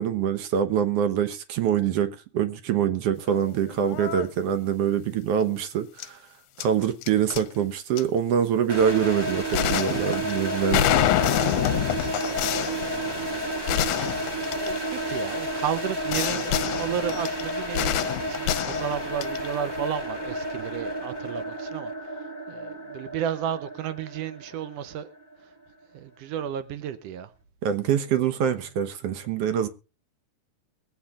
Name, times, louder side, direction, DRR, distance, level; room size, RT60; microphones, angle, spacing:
voice 1, 0.0-6.2 6.6-10.9 27.6-29.7, right 8 dB, 65° right, 1.6 m, -25 dB
sound 1, 3.3-3.5 3.8-4.3 6.0-6.1 6.6-7.4 8.0-8.1 9.5-15.2 16.1-19.5, left 12 dB, 75° left, 1.9 m, -27 dB
sound 2, 8.7-25.5, right 1 dB, 15° right, 0.8 m, -31 dB
voice 2, 12.2-13.4 13.7-25.1 25.4-25.5 25.9-27.3, right 9 dB, 85° right, 1.4 m, -33 dB
22.5 x 8.7 x 2.4 m
omnidirectional pair, 3.8 m